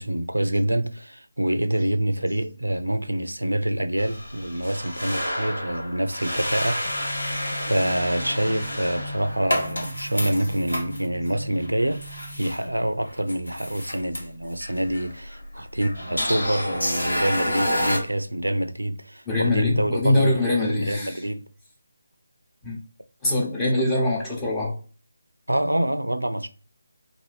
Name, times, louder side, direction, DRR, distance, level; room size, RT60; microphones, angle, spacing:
voice 1, 0.0-7.0 7.3-21.4 23.8-23.9 25.5-26.5, right 1 dB, 90° right, 0.4 m, -26 dB
sound 1, 4.0-18.0, left 1 dB, 80° left, 1.3 m, -30 dB
sound 2, 6.9-12.4, equal, 40° left, 0.4 m, -39 dB
voice 2, 19.3-21.2 22.6-22.8 23.2-24.8, left 2 dB, 10° left, 0.9 m, -23 dB
2.6 x 2.5 x 3.2 m
figure-of-eight pair, 155°, 0 cm